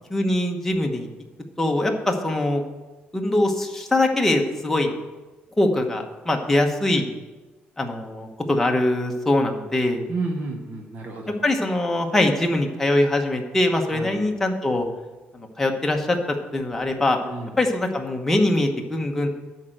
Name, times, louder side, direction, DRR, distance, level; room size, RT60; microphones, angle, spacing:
voice 1, 0.1-1.1 1.6-2.6 3.1-4.9 5.6-7.1 7.8-10.0 11.4-14.9 15.3-16.2 16.5-17.2 17.6-19.3, left 1 dB, 10° left, 2 dB, 1.0 m, -22 dB
voice 2, 10.1-11.4 13.8-14.3 17.2-17.5, right 3 dB, 45° right, 2 dB, 1.0 m, -31 dB
10.5 x 4.5 x 7.7 m, 1.2 s
cardioid pair, 155°, 4 cm